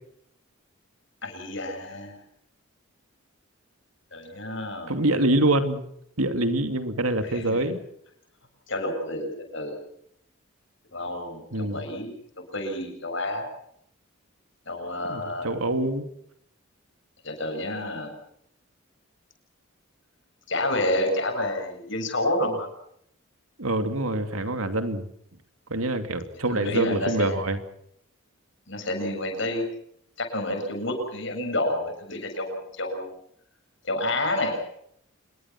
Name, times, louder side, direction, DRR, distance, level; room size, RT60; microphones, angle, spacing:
voice 1, 1.2-2.2 4.1-4.9 7.3-7.7 8.7-9.8 10.9-12.1 12.5-13.5 14.7-15.5 17.2-18.1 20.5-22.7 26.5-27.4 28.7-29.7 30.2-33.1 33.8-34.6, left 1 dB, 60° left, 4 dB, 7.6 m, -29 dB
voice 2, 4.9-5.8 6.2-7.8 11.5-11.8 15.1-16.1 23.6-25.1 25.7-27.6, right 1 dB, 90° right, 8 dB, 2.8 m, -25 dB
27.0 x 22.0 x 6.1 m, 0.71 s
head